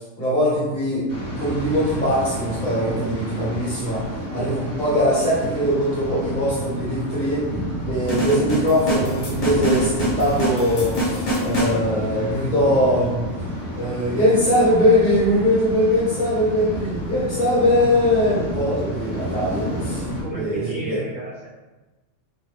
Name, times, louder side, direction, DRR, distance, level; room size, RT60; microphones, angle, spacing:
voice 1, 0.2-1.0 1.3-4.0 4.3-7.4 7.9-13.3 13.7-21.0, equal, 40° left, -9 dB, 1.4 m, -21 dB
Waves surf, 1.1-20.2, equal, 15° left, 0.9 m, -30 dB
sound 1, 8.1-11.8, right 1 dB, 70° left, 1.2 m, -25 dB
voice 2, 20.0-21.5, right 3 dB, 45° right, -9 dB, 1.1 m, -33 dB
3.0 x 2.7 x 3.2 m, 1.2 s
omnidirectional pair, 1.2 m